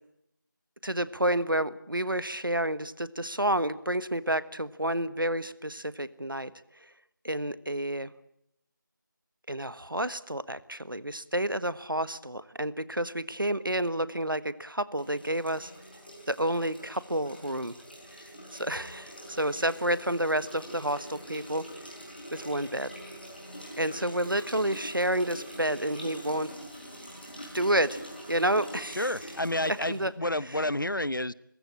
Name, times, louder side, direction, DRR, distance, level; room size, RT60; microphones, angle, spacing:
voice 1, 0.8-6.5 7.2-8.1 9.5-15.7 16.3-17.7 18.1-18.2 18.5-21.6 22.3-22.9 23.8-26.5 27.5-28.0 28.3-29.1 29.9-30.1 30.4-30.6, right 1 dB, 85° right, 16 dB, 1.4 m, -30 dB
sound 1, 14.9-30.1, equal, 30° left, 5.0 m, -44 dB
voice 2, 29.0-31.3, left 1 dB, 75° left, 21 dB, 0.9 m, -30 dB
28.5 x 16.0 x 8.9 m, 0.76 s
figure-of-eight pair, 180°, 11 cm